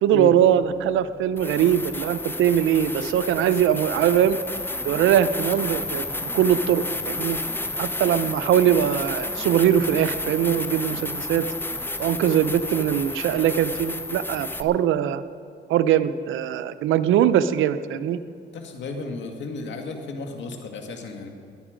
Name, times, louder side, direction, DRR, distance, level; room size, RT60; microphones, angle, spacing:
voice 1, 0.0-4.4 4.8-7.4 7.8-11.5 12.0-15.2 15.7-18.2, right 10 dB, 85° right, 13 dB, 0.6 m, -21 dB
sound 1, 1.3-14.6, left 2 dB, 10° left, 0.7 m, -31 dB
voice 2, 18.5-21.3, left 3 dB, 65° left, 3 dB, 2.0 m, -33 dB
20.5 x 9.7 x 5.1 m, 2.4 s
cardioid pair, 90°, 20 cm